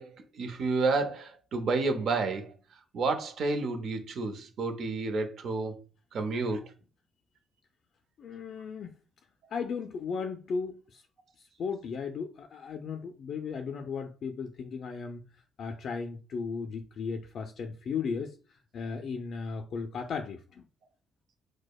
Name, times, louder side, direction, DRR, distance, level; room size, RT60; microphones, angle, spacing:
voice 1, 0.0-2.5 2.9-5.8 6.1-6.6, right 3 dB, 65° right, 0.6 m, -30 dB
voice 2, 8.2-9.0 9.5-11.0 11.4-15.2 15.6-20.7, left 5 dB, 60° left, 0.3 m, -36 dB
4.8 x 2.1 x 2.3 m
cardioid pair, 90°, 0 cm